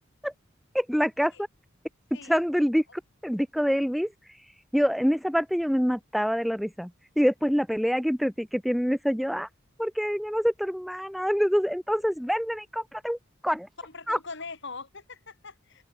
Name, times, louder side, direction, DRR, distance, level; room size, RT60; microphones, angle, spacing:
voice 1, 0.7-1.3 2.3-4.1 4.7-6.9 7.2-9.5 9.8-13.2 13.4-13.7 14.1-14.2, equal, ahead, 0.9 m, -26 dB
voice 2, 13.8-15.9, left 4 dB, 65° left, 5.1 m, -42 dB
open air
head